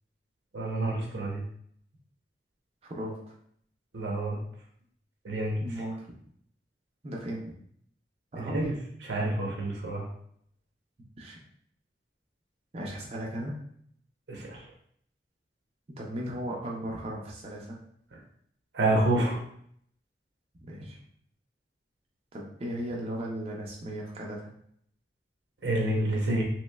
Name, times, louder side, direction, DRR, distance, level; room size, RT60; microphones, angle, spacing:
voice 1, 0.5-1.4 3.9-4.4 5.2-5.6 8.4-8.7 9.0-10.1 14.3-14.6 18.7-19.4 25.6-26.4, right 1 dB, 85° right, -1 dB, 0.8 m, -28 dB
voice 2, 2.8-3.2 5.6-6.0 7.0-7.5 8.3-8.7 11.2-11.4 12.7-13.5 16.0-17.8 20.6-21.0 22.3-24.5, right 1 dB, 35° right, -2 dB, 0.5 m, -36 dB
3.0 x 3.0 x 2.2 m, 0.66 s
head